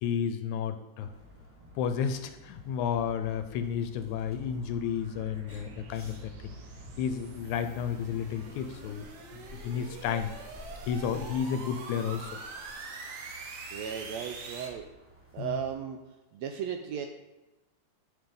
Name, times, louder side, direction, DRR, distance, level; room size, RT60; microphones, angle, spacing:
voice 1, 0.0-1.1 1.8-6.6 7.0-9.1 9.3-10.3 10.8-12.4 15.4-15.6, left 8 dB, 80° left, 9 dB, 1.9 m, -32 dB
sound 1, 1.0-15.7, left 1 dB, 20° right, 0.3 m, -50 dB
sound 2, 3.6-14.7, right 4 dB, 65° right, 1.8 m, -46 dB
voice 2, 13.7-14.9 15.3-16.0 16.3-17.1, right 8 dB, 80° right, 5 dB, 1.6 m, -35 dB
11.5 x 6.0 x 3.9 m, 1.1 s
omnidirectional pair, 3.5 m